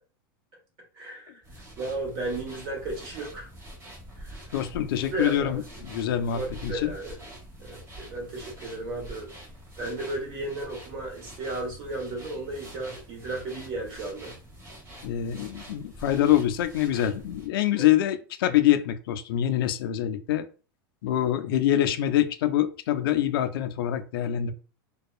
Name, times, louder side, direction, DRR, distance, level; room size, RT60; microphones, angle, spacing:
voice 1, 1.0-1.4 1.8-3.5 4.2-4.4 5.1-5.6 6.3-7.1 7.6-9.3 9.8-14.4 17.8-17.9, right 2 dB, 45° right, 1.3 m, -34 dB
sound 1, 1.4-17.5, equal, 25° right, 1.2 m, -45 dB
voice 2, 4.5-6.9 15.0-20.5 21.0-24.5, left 11 dB, 75° left, 0.4 m, -25 dB
2.7 x 2.2 x 2.4 m
supercardioid pair, 130°, 12 cm